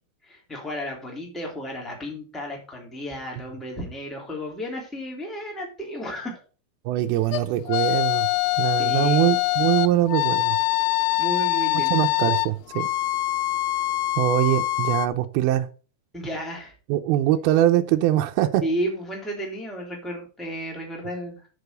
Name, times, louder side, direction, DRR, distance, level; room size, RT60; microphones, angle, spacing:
voice 1, 0.3-6.4 8.8-9.2 11.2-12.1 16.1-16.7 18.6-21.5, equal, ahead, 2.5 m, -33 dB
voice 2, 6.9-8.3 8.6-10.6 11.7-12.9 14.2-15.7 16.9-18.6, right 13 dB, 80° right, 2.5 m, -22 dB
sound 1, 7.3-15.1, left 19 dB, 85° left, 2.6 m, -24 dB
6.8 x 6.7 x 6.6 m
omnidirectional pair, 4.6 m